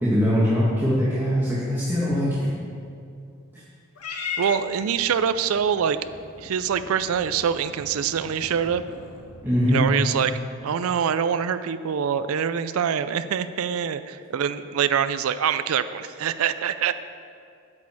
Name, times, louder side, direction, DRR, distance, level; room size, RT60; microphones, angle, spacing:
voice 1, 0.0-2.5 9.4-9.8, equal, 10° right, -9 dB, 1.7 m, -22 dB
Purr / Meow, 3.9-10.4, left 4 dB, 90° left, 1.4 m, -39 dB
voice 2, 4.4-6.0 6.4-8.8 9.7-10.4 10.6-16.9, right 7 dB, 70° right, 12 dB, 0.4 m, -24 dB
9.7 x 6.3 x 7.1 m, 2.4 s
head